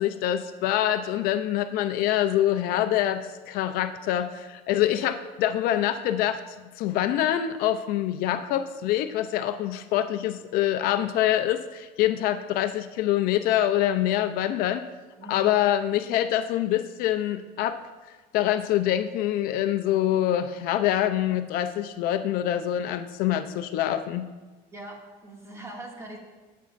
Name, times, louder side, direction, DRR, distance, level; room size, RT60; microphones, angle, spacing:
voice 1, 0.0-6.4 6.8-14.9 15.3-17.8 18.3-24.3, left 12 dB, 65° left, 9 dB, 0.6 m, -25 dB
voice 2, 15.2-15.6 24.7-26.2, right 1 dB, 20° right, -1 dB, 2.2 m, -42 dB
19.0 x 8.4 x 2.6 m, 1.3 s
cardioid pair, 140°, 16 cm